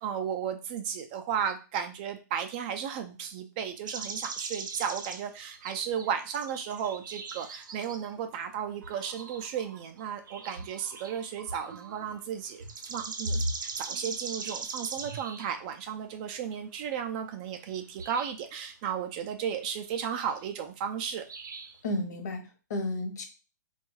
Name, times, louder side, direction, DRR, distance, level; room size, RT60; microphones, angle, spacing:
voice 1, 0.0-21.2, right 8 dB, 25° right, 6 dB, 0.3 m, -34 dB
sound 1, 3.9-5.3 5.5-8.1 8.7-12.3 12.6-15.6 17.7-17.8 18.0-18.3 20.3-20.5 21.3-21.8, right 3 dB, 85° right, 0.6 m, -39 dB
voice 2, 21.8-23.3, left 1 dB, 60° left, 6 dB, 0.9 m, -32 dB
3.4 x 2.3 x 3.1 m, 0.32 s
hypercardioid pair, 155°, 10 cm